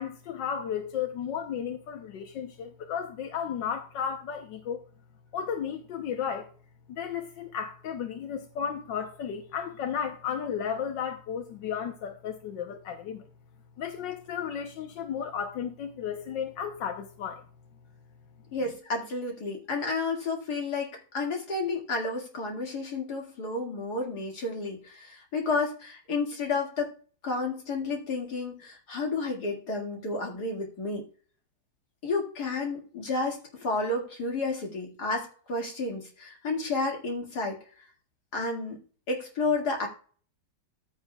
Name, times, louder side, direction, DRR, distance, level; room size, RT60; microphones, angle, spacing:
voice 1, 0.0-4.8 5.3-6.5 6.9-13.2 13.8-17.4, left 8 dB, 85° left, 1.6 m, -34 dB
voice 2, 18.5-26.9 27.2-31.0 32.0-37.6 38.3-38.8 39.1-39.9, left 3 dB, 60° left, 2.7 m, -31 dB
14.5 x 7.1 x 2.3 m
omnidirectional pair, 1.9 m